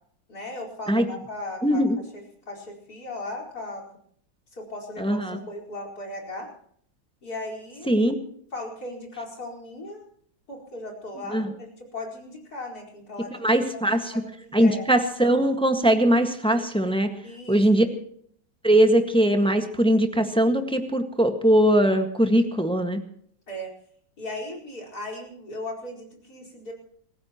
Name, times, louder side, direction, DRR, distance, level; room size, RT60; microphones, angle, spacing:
voice 1, 0.3-1.8 2.5-3.8 4.6-6.5 7.2-7.9 8.5-10.0 10.5-13.4 13.7-14.8 17.2-17.9 23.5-23.7 24.2-26.7, left 2 dB, 50° left, 1 dB, 5.2 m, -37 dB
voice 2, 1.6-2.0 5.0-5.4 7.9-8.2 11.3-11.5 13.4-14.1 14.5-17.1 17.5-17.9 18.6-23.0, right 1 dB, 5° left, 6 dB, 1.4 m, -21 dB
27.5 x 15.5 x 3.0 m, 0.62 s
omnidirectional pair, 2.1 m